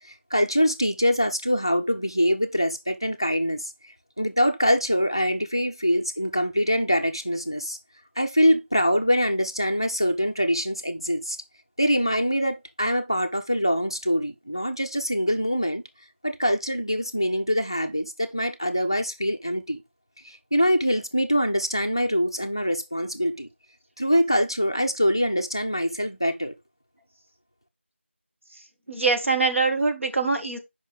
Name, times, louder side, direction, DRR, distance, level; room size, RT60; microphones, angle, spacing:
voice 1, 0.3-7.8 8.2-11.4 11.8-15.8 16.2-19.8 20.2-23.5 24.0-26.5, equal, 20° left, 0.4 m, -24 dB
voice 2, 28.9-30.6, right 3 dB, 80° right, 1.9 m, -23 dB
6.7 x 5.3 x 3.3 m
figure-of-eight pair, 175°, 7 cm